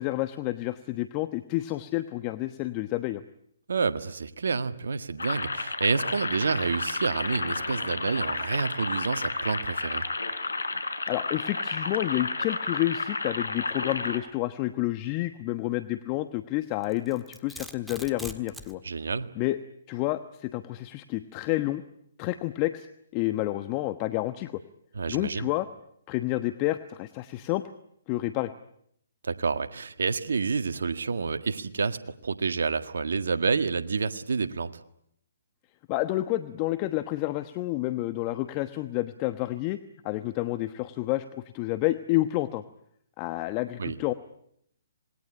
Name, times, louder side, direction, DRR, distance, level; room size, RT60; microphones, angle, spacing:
voice 1, 0.0-3.2 11.1-18.8 19.4-19.6 19.9-21.8 22.2-22.9 23.1-24.6 25.1-25.7 26.1-27.6 28.1-28.5 35.9-39.8 40.0-41.2 41.5-42.6 43.2-44.1, left 17 dB, 30° left, 10 dB, 1.1 m, -29 dB
voice 2, 3.7-10.0 18.8-19.3 25.0-25.5 29.2-34.8 43.8-44.0, right 5 dB, 75° right, 9 dB, 1.8 m, -29 dB
sound 1, 5.2-14.2, left 3 dB, 85° left, 3.6 m, -31 dB
Domestic sounds home sounds, 16.8-18.8, equal, ahead, 1.6 m, -42 dB
26.5 x 20.5 x 10.0 m, 0.73 s
hypercardioid pair, 135°, 0 cm